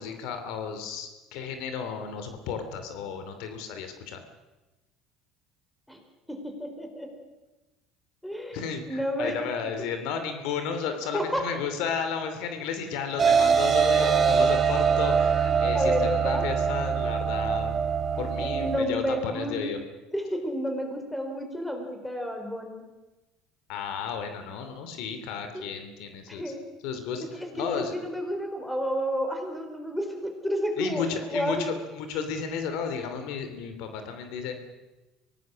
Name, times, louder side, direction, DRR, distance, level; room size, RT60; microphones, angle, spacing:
voice 1, 0.0-4.2 8.5-17.8 18.2-19.8 23.7-26.5 26.8-27.2 27.5-27.9 30.8-34.6, left 6 dB, 75° left, 7 dB, 2.7 m, -33 dB
voice 2, 6.3-7.1 8.2-9.4 11.1-11.5 15.7-16.5 18.1-19.6 20.1-22.8 25.5-25.7 26.3-26.7 27.3-31.6, equal, 5° left, 4 dB, 4.5 m, -31 dB
sound 1, 13.2-18.8, right 6 dB, 35° right, 2.0 m, -23 dB
24.0 x 18.0 x 6.4 m, 1.1 s
supercardioid pair, 110°, 0 cm